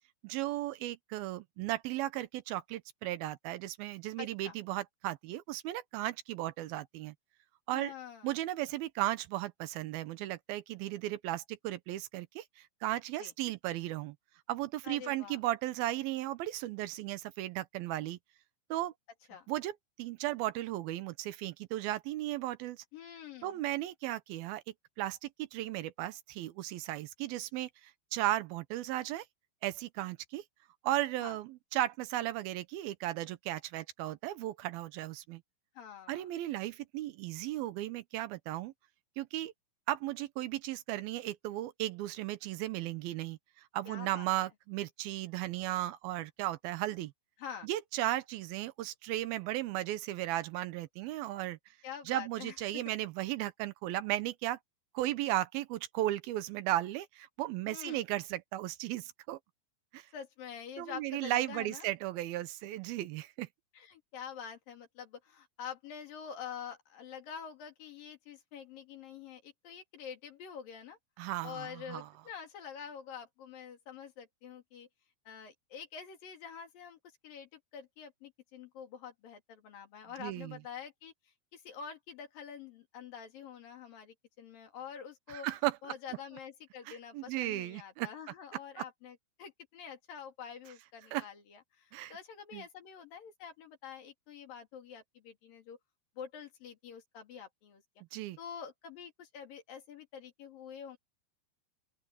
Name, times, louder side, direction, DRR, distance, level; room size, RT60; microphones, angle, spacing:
voice 1, 0.2-7.1 7.7-7.9 8.2-14.2 14.5-18.2 18.7-18.9 19.5-22.8 23.4-24.6 25.0-29.3 29.6-30.4 30.8-35.4 36.1-38.7 39.2-39.5 39.9-47.1 47.6-51.6 52.1-54.6 54.9-59.4 59.9-60.1 60.8-63.5 71.2-72.1 80.2-80.6 85.3-85.8 86.9-88.1 88.8-88.9 91.1-91.2 91.9-92.1 92.5-92.6 98.1-98.4, right 15 dB, 80° right, 2.7 m, -35 dB
voice 2, 4.2-4.6 7.7-8.4 13.2-13.3 14.8-15.4 19.3-19.5 22.9-23.6 31.2-31.4 35.7-36.3 43.8-44.3 47.4-47.7 51.8-52.8 57.7-58.0 60.1-61.9 63.7-71.0 71.4-74.9 75.3-81.1 81.5-85.5 85.8-95.8 96.2-97.8 98.4-101.0, left 7 dB, 65° left, 4.4 m, -47 dB
open air
omnidirectional pair, 4.4 m